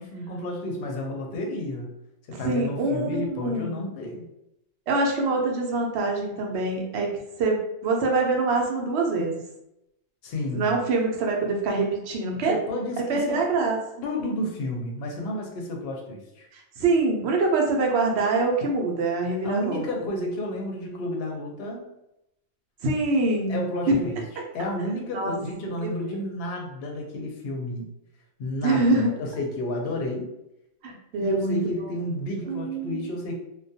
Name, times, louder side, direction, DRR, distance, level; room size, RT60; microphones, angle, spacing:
voice 1, 0.0-1.9 2.2-4.3 10.2-10.8 12.5-13.4 14.0-16.5 19.4-21.8 23.5-24.2 24.5-27.9 28.4-30.3 31.2-33.4, left 1 dB, 60° left, 0 dB, 0.7 m, -31 dB
voice 2, 2.4-3.8 4.9-7.1 7.4-9.4 10.5-12.5 13.0-13.8 16.5-19.9 22.8-24.0 25.1-25.4 28.6-29.1 30.8-31.7 32.5-33.1, right 3 dB, 65° right, 1 dB, 0.8 m, -25 dB
2.3 x 2.2 x 2.7 m, 0.85 s
omnidirectional pair, 1.3 m